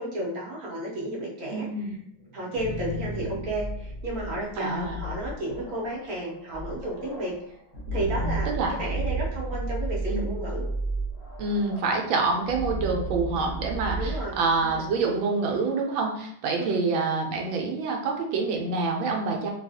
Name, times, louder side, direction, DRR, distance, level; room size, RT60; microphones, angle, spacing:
voice 1, 0.0-2.0 2.3-7.3 7.9-10.6 14.0-14.8 16.6-16.8, right 1 dB, 55° right, -4 dB, 1.1 m, -32 dB
voice 2, 1.5-1.9 4.6-5.0 8.6-8.7 10.1-10.3 11.4-19.5, right 3 dB, 80° right, 1 dB, 1.4 m, -27 dB
sound 1, 2.3-15.1, right 2 dB, 50° left, 0.7 m, -33 dB
3.9 x 2.3 x 2.7 m, 0.68 s
omnidirectional pair, 2.3 m